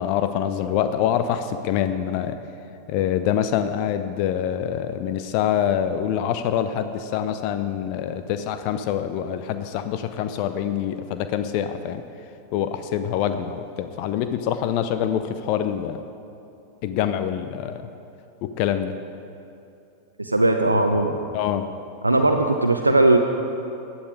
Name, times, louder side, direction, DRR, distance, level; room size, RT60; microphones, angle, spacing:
voice 1, 0.0-2.4 2.9-12.0 12.5-16.0 16.8-17.8 18.4-18.9 21.3-21.7, left 9 dB, 45° left, 10 dB, 0.6 m, -25 dB
voice 2, 20.2-21.2 22.0-23.2, right 2 dB, 85° right, 4 dB, 0.7 m, -18 dB
15.5 x 9.8 x 4.8 m, 2.7 s
figure-of-eight pair, 90°, 0 cm